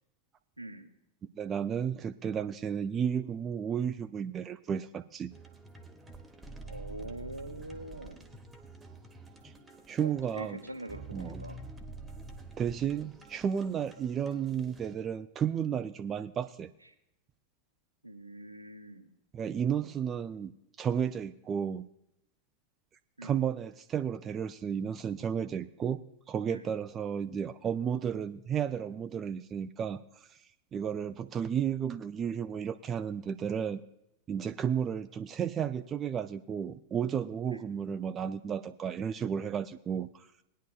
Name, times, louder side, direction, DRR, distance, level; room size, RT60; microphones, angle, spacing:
voice 1, 0.6-0.9 6.6-8.2 10.0-11.6 18.0-19.1 23.2-23.4 26.5-26.7 37.5-37.7, right 1 dB, 85° right, 7 dB, 0.9 m, -44 dB
voice 2, 1.4-5.3 9.4-9.5 9.9-10.6 11.1-11.4 12.6-16.7 19.3-20.5 20.8-21.9 23.2-26.0 26.3-30.3 30.7-33.8 34.3-40.3, right 8 dB, 25° right, 10 dB, 0.4 m, -33 dB
sound 1, 5.3-15.0, right 2 dB, 10° right, 1.1 m, -48 dB
19.5 x 10.0 x 2.4 m, 0.79 s
figure-of-eight pair, 90°, 0 cm